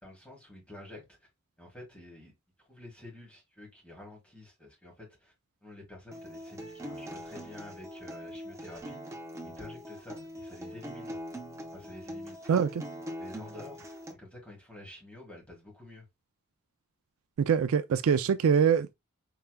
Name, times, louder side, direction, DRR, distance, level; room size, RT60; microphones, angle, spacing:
voice 1, 0.0-1.2 1.6-2.3 2.6-5.3 5.6-9.1 9.4-11.2 11.7-12.6 13.2-16.0, left 1 dB, 5° left, 1.6 m, -49 dB
Acoustic guitar, 6.1-14.1, equal, 15° right, 0.6 m, -42 dB
voice 2, 12.5-12.8 17.4-18.9, right 7 dB, 70° right, 0.3 m, -24 dB
4.7 x 3.3 x 2.2 m
head